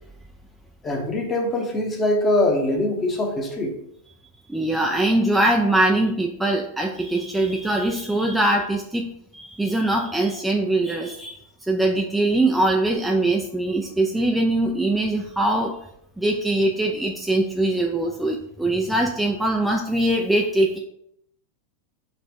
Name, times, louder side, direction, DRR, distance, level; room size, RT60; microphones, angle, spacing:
voice 1, 0.8-3.7, left 1 dB, 20° left, 2 dB, 0.9 m, -23 dB
voice 2, 4.5-11.4 11.7-15.7 16.2-20.8, right 1 dB, 5° right, 1 dB, 0.4 m, -22 dB
4.3 x 2.4 x 4.5 m, 0.75 s
figure-of-eight pair, 90°, 0 cm